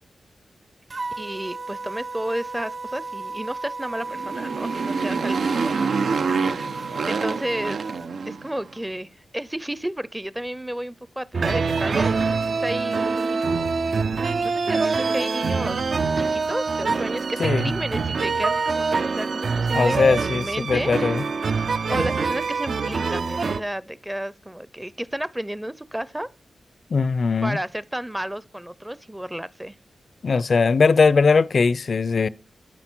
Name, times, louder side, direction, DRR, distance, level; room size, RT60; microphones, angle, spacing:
sound 1, 0.9-8.1, right 3 dB, 40° right, 1.2 m, -34 dB
voice 1, 1.2-5.9 6.8-7.8 8.2-13.4 14.4-15.8 16.2-21.1 21.5-26.3 27.4-29.8, right 1 dB, 10° right, 0.6 m, -32 dB
Motorcycle, 4.0-8.7, right 5 dB, 85° right, 0.8 m, -26 dB
sound 2, 11.3-23.6, right 4 dB, 60° right, 0.6 m, -24 dB
voice 2, 17.4-17.7 19.7-21.2 26.9-27.6 30.2-32.3, left 4 dB, 55° left, 0.6 m, -20 dB
13.5 x 10.5 x 6.1 m
wide cardioid pair, 130°, 0 cm